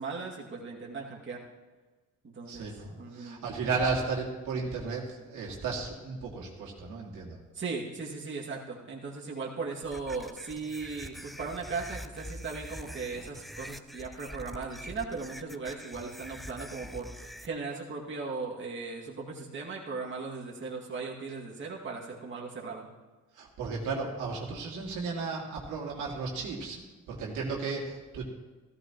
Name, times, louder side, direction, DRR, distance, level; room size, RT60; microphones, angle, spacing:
voice 1, 0.0-1.4 2.2-2.7 3.0-3.4 7.5-22.9, right 4 dB, 40° right, -3 dB, 2.3 m, -38 dB
voice 2, 2.5-7.4 23.3-28.3, right 4 dB, 80° right, -2 dB, 2.6 m, -34 dB
sound 1, 9.8-17.5, equal, ahead, 0.5 m, -44 dB
15.0 x 13.5 x 3.0 m, 1.3 s
cardioid pair, 90°, 30 cm